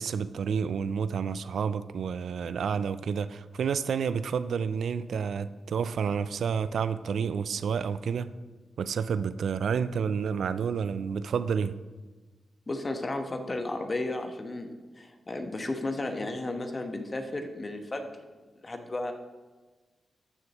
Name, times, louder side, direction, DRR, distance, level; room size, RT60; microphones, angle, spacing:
voice 1, 0.0-8.3 8.8-11.7, right 6 dB, 75° right, 14 dB, 0.3 m, -30 dB
voice 2, 12.7-18.1 18.6-19.1, left 2 dB, 40° left, 5 dB, 1.2 m, -33 dB
13.5 x 6.5 x 3.0 m, 1.3 s
supercardioid pair, 45°, 0 cm